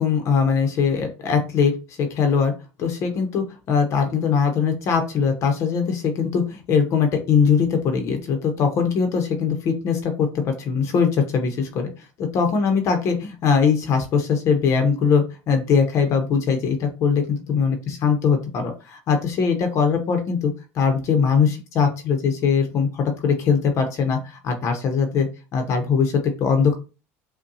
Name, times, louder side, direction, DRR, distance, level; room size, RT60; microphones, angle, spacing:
voice 1, 0.0-2.5 2.8-11.9 12.2-25.3 25.5-26.7, left 6 dB, 45° left, 5 dB, 0.7 m, -21 dB
5.2 x 2.2 x 2.7 m, 0.31 s
supercardioid pair, 125°, 7 cm